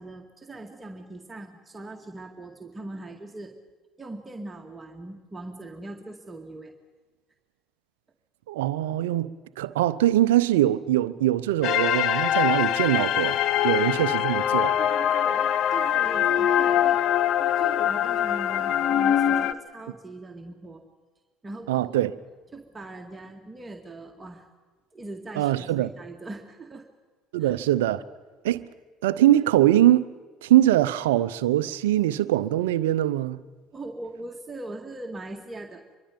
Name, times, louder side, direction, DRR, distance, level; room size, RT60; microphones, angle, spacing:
voice 1, 0.0-3.5 4.0-6.7 13.6-13.7 14.8-20.8 21.4-21.8 22.5-24.5 24.9-26.9 27.4-27.6 33.7-35.8, right 2 dB, 20° right, 2.1 m, -40 dB
voice 2, 8.5-13.4 13.6-14.8 21.7-22.1 25.3-25.9 27.3-28.0 28.4-28.6 29.0-30.1 30.4-33.4, right 13 dB, 80° right, 0.7 m, -22 dB
sound 1, 11.6-19.5, left 10 dB, 60° left, 0.9 m, -23 dB
25.5 x 23.0 x 5.3 m
hypercardioid pair, 60°, 0 cm